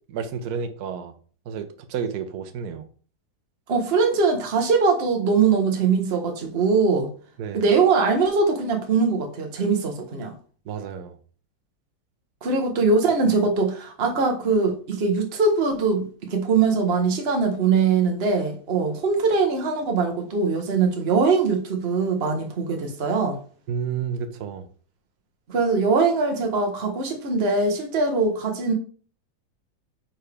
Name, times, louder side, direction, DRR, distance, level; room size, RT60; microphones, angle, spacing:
voice 1, 0.1-1.1 1.5-2.9 7.4-7.7 10.7-11.1 23.7-24.7, right 7 dB, 65° right, 1.2 m, -31 dB
voice 2, 3.7-7.1 7.5-10.3 12.4-23.4 25.5-28.7, right 4 dB, 35° right, 1.3 m, -22 dB
8.8 x 4.6 x 3.5 m
omnidirectional pair, 2.0 m